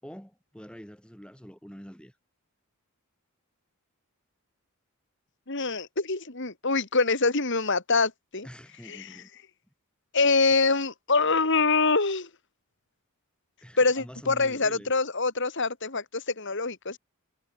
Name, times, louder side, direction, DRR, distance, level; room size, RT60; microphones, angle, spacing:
voice 1, 0.0-2.1 8.4-9.3 13.6-14.9, equal, 5° left, 5.3 m, -45 dB
voice 2, 5.5-8.5 8.9-9.1 10.1-12.3 13.8-17.0, left 3 dB, 55° left, 2.4 m, -25 dB
head